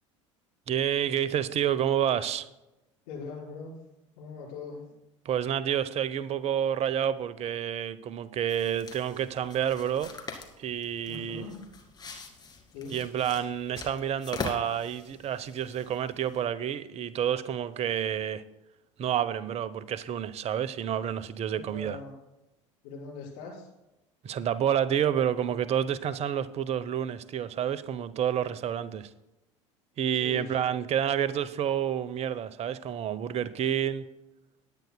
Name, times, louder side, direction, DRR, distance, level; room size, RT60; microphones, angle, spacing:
voice 1, 0.7-2.5 5.2-10.1 10.6-11.4 12.9-18.4 19.0-22.0 24.2-29.1 30.0-34.0, right 9 dB, 40° right, 0.8 m, -29 dB
voice 2, 3.1-3.8 4.2-4.9 11.1-11.6 12.7-12.9 21.5-22.2 22.8-23.7 30.1-30.5, left 4 dB, 65° left, 4.6 m, -41 dB
sound 1, 8.5-16.4, left 4 dB, 25° left, 2.1 m, -43 dB
19.5 x 9.3 x 2.2 m
hypercardioid pair, 70°, 16 cm